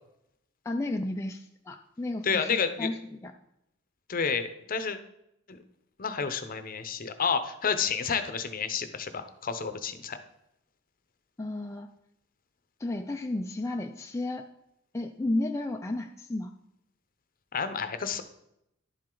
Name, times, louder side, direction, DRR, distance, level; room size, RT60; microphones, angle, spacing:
voice 1, 0.6-3.3 11.4-11.9 12.8-14.4 14.9-16.5, left 2 dB, 15° left, 3 dB, 0.4 m, -33 dB
voice 2, 2.2-2.9 4.1-5.0 5.5-5.6 6.0-10.2 17.5-18.2, left 6 dB, 45° left, 10 dB, 0.7 m, -30 dB
11.0 x 7.6 x 3.8 m, 0.81 s
head